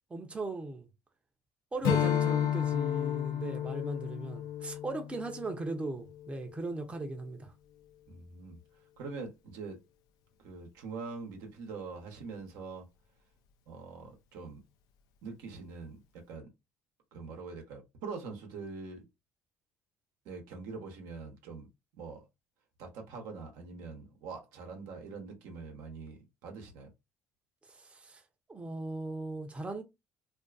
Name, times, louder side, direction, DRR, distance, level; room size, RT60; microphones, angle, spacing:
voice 1, 0.1-0.9 1.7-7.5 27.7-28.2 28.5-29.8, right 2 dB, 20° right, 0.7 m, -38 dB
Strum, 1.8-6.5, left 10 dB, 75° left, 0.4 m, -32 dB
voice 2, 8.1-8.6 9.0-9.8 10.4-12.9 13.7-14.6 15.2-16.5 17.1-19.0 20.2-21.7 22.0-22.2 22.8-26.9, right 4 dB, 80° right, 0.9 m, -43 dB
2.5 x 2.4 x 2.3 m
supercardioid pair, 90°, 6 cm